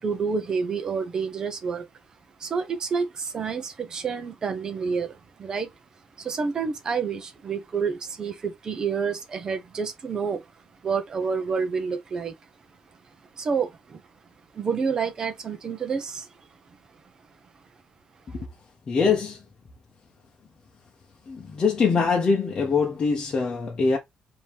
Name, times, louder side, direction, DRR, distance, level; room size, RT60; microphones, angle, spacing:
voice 1, 0.0-1.9 2.4-5.7 6.2-10.4 10.8-12.3 13.4-14.0 14.5-16.3, right 5 dB, 30° right, 0.7 m, -28 dB
voice 2, 18.9-19.4 21.3-24.0, left 5 dB, 35° left, 0.8 m, -23 dB
4.6 x 2.8 x 3.4 m
cardioid pair, 165°, 2 cm